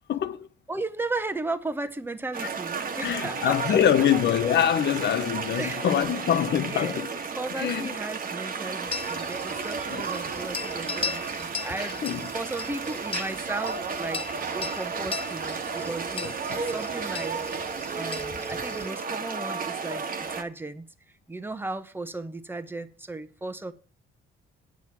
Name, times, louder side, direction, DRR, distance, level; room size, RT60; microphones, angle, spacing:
voice 1, 0.1-0.5 3.0-7.1 7.6-8.0 9.9-10.0 11.8-12.2 16.5-16.7, left 9 dB, 60° left, 1.0 m, -24 dB
voice 2, 0.7-3.8 5.5-5.9 6.7-7.1 7.4-14.2 14.5-16.3 16.6-17.4 17.9-20.8 21.3-23.7, right 2 dB, 10° right, 1.1 m, -35 dB
sound 1, 2.3-20.4, right 5 dB, 45° right, 1.4 m, -33 dB
sound 2, 8.9-18.9, left 5 dB, 30° left, 0.7 m, -38 dB
9.2 x 6.3 x 7.4 m
cardioid pair, 90°, 20 cm